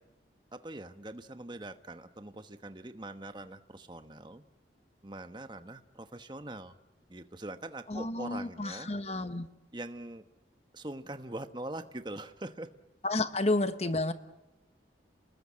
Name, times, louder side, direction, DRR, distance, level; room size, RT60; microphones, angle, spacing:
voice 1, 0.5-4.4 5.0-6.7 7.1-8.9 9.7-10.2 10.7-12.7, right 1 dB, 25° right, 9 dB, 1.1 m, -43 dB
voice 2, 7.9-9.5 13.0-14.1, left 2 dB, 35° left, 10 dB, 1.1 m, -31 dB
29.0 x 20.5 x 8.6 m, 0.97 s
head